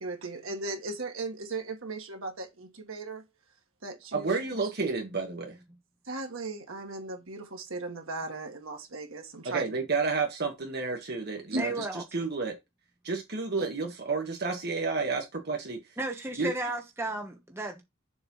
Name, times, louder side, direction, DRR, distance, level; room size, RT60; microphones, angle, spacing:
voice 1, 0.0-3.2 3.8-4.7 6.0-9.7 11.5-11.9 13.6-13.7, right 3 dB, 70° right, 1.7 m, -37 dB
voice 2, 4.1-5.6 9.4-12.5 13.0-15.8 16.4-16.5, right 4 dB, 50° right, 1.6 m, -31 dB
voice 3, 11.6-12.0 16.0-17.8, right 2 dB, 10° right, 1.1 m, -34 dB
7.0 x 3.4 x 5.5 m
head